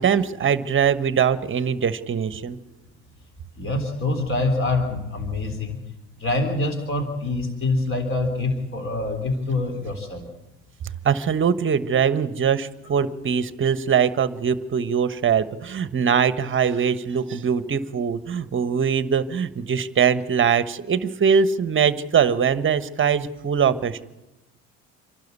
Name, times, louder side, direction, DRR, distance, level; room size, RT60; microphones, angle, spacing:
voice 1, 0.0-2.6 11.0-24.0, right 7 dB, 30° right, 13 dB, 1.2 m, -22 dB
voice 2, 3.6-5.8 6.2-10.3, left 2 dB, 30° left, 4 dB, 3.8 m, -25 dB
27.0 x 12.0 x 8.3 m, 0.99 s
hypercardioid pair, 75°, 39 cm